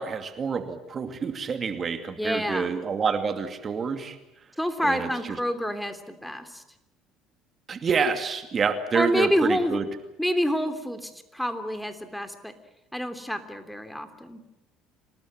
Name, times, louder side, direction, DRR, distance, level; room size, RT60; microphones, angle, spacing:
voice 1, 0.0-4.2 4.8-5.1 7.7-9.8, right 5 dB, 40° right, 8 dB, 2.4 m, -27 dB
voice 2, 2.2-2.7 4.6-6.6 8.9-9.8 10.2-12.5 12.9-14.4, equal, 5° left, 8 dB, 3.1 m, -28 dB
27.0 x 19.0 x 7.6 m, 0.94 s
hypercardioid pair, 65°, 0 cm